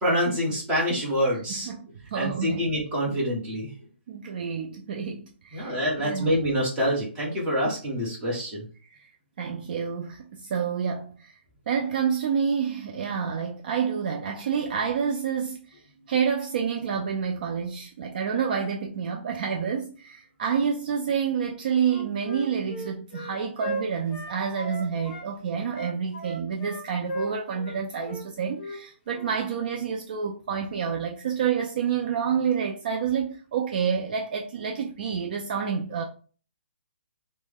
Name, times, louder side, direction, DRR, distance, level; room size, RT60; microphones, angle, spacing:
voice 1, 0.0-1.7 2.1-3.7 5.5-8.6, equal, 15° right, 1.1 m, -26 dB
voice 2, 1.3-1.8 2.1-2.7 4.1-6.3 8.9-9.0 9.4-11.3 11.7-15.8 16.1-36.0, right 7 dB, 45° right, 0.4 m, -28 dB
Wind instrument woodwind instrument, 21.8-25.3 25.7-27.8 28.0-28.2 28.6-28.8 29.1-29.3, right 1 dB, 30° left, 0.7 m, -36 dB
3.1 x 2.1 x 3.4 m
hypercardioid pair, 155°, 7 cm